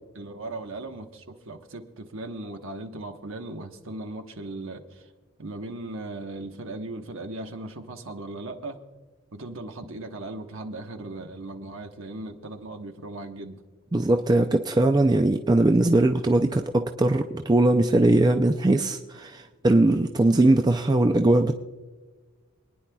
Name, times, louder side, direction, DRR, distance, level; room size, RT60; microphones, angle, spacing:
voice 1, 0.1-5.1 5.4-8.8 9.3-13.6, right 2 dB, 60° right, 5 dB, 1.1 m, -38 dB
voice 2, 13.9-21.5, right 2 dB, 20° right, 5 dB, 0.4 m, -20 dB
26.5 x 9.9 x 2.3 m, 1.3 s
head